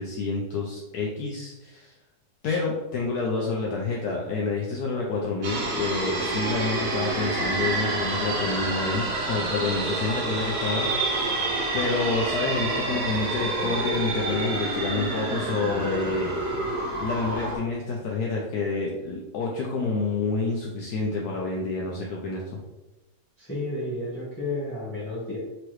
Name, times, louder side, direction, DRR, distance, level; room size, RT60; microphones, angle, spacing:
voice 1, 0.0-1.9 2.4-11.4 11.7-16.3 17.0-22.6, left 3 dB, 70° left, -2 dB, 1.1 m, -28 dB
sound 1, 5.4-17.6, right 2 dB, 60° right, 1.4 m, -28 dB
voice 2, 23.4-25.4, left 2 dB, 10° left, -9 dB, 0.9 m, -31 dB
4.6 x 3.0 x 3.1 m, 1.0 s
omnidirectional pair, 1.9 m